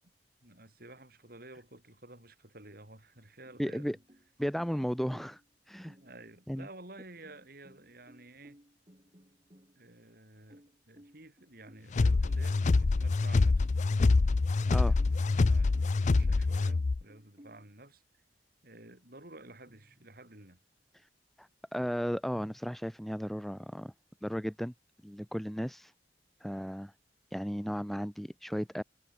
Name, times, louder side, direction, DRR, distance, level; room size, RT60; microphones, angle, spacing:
voice 1, 0.4-4.0 5.9-8.6 9.7-13.7 14.8-18.2 18.6-20.6, right 2 dB, 55° right, 6.7 m, -52 dB
sound 1, 3.2-4.3 4.6-5.5 5.9-6.5 7.2-10.1 10.5-12.0 12.6-12.7 13.1-13.2 13.6-14.3 14.7-17.7 19.7-20.4 22.3-22.6, equal, 30° right, 7.9 m, -60 dB
voice 2, 3.6-4.0 4.4-5.4 5.7-5.9 6.5-6.7 14.7-15.0 21.4-23.9 24.2-24.7 25.0-25.9 26.4-26.9 27.3-28.8, equal, ahead, 0.7 m, -35 dB
sound 2, 11.9-17.0, left 3 dB, 45° left, 0.4 m, -26 dB
head